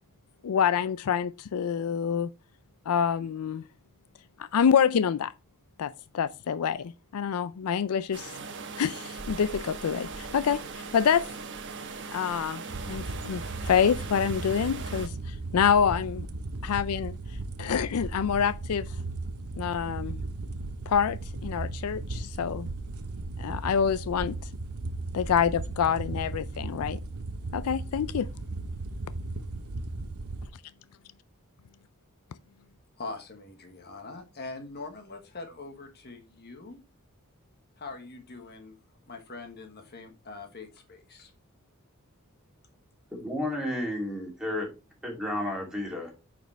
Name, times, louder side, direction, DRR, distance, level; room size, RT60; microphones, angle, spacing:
voice 1, 0.4-2.3 2.9-3.6 4.4-5.3 5.8-8.3 8.8-11.3 12.1-12.6 12.9-16.3 16.6-17.1 17.6-18.9 19.6-20.2 20.9-22.7 23.4-24.3 25.1-27.0 27.5-28.3, left 7 dB, 75° left, 0.4 m, -27 dB
sound 1, 8.1-15.1, right 4 dB, 55° right, 1.1 m, -39 dB
sound 2, 12.7-30.5, right 2 dB, 80° right, 0.9 m, -36 dB
voice 2, 33.0-36.8 37.8-38.7 39.1-41.3, left 3 dB, 45° left, 1.3 m, -43 dB
voice 3, 43.1-44.7 45.0-46.1, left 1 dB, 5° right, 2.8 m, -32 dB
9.1 x 5.1 x 3.3 m
head